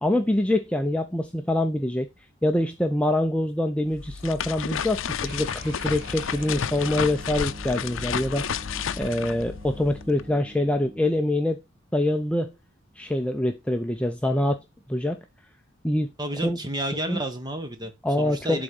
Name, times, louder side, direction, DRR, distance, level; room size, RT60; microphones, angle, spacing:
voice 1, 0.0-2.1 2.4-8.6 9.0-11.6 11.9-12.5 13.0-14.6 14.9-15.2 15.8-16.1 16.4-16.6 17.1-17.2 18.0-18.6, left 1 dB, 5° left, 0.5 m, -25 dB
sound 1, 3.9-10.2, left 7 dB, 70° left, 0.5 m, -32 dB
sound 2, 5.2-11.3, equal, 50° right, 2.1 m, -43 dB
voice 2, 16.2-18.6, right 1 dB, 20° right, 1.3 m, -31 dB
11.0 x 4.0 x 4.9 m
head